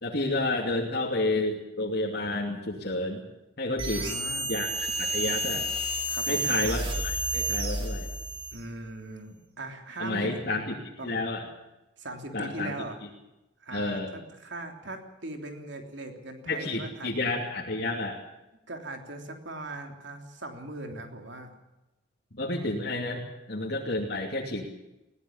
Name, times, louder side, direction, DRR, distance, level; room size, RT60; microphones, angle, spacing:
voice 1, 0.0-3.2 3.6-4.1 4.5-5.7 6.3-8.1 10.0-10.8 11.0-11.4 12.3-12.7 13.7-14.1 16.5-18.2 22.3-24.6, left 2 dB, 50° left, -2 dB, 2.8 m, -30 dB
sound 1, 3.8-8.7, right 1 dB, 25° right, 2.8 m, -30 dB
voice 2, 3.9-4.5 6.1-6.6 8.5-10.5 11.0-11.2 12.0-13.0 13.6-17.1 18.7-21.5, right 2 dB, 60° right, 4 dB, 3.3 m, -40 dB
21.0 x 17.5 x 7.3 m, 0.96 s
head